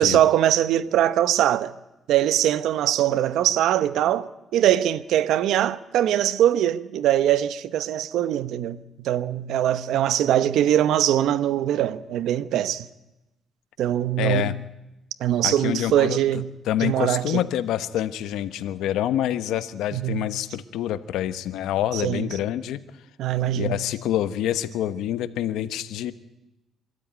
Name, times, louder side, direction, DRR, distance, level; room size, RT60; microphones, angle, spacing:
voice 1, 0.0-1.7 2.1-12.9 13.8-14.5 15.2-16.5 16.8-17.2 19.9-20.2 21.9-22.3 23.2-23.8, right 11 dB, 80° right, 0.9 m, -22 dB
voice 2, 14.2-14.6 15.4-22.8 23.5-26.1, left 12 dB, 85° left, 1.0 m, -27 dB
24.5 x 13.5 x 9.5 m
cardioid pair, 85°, 0 cm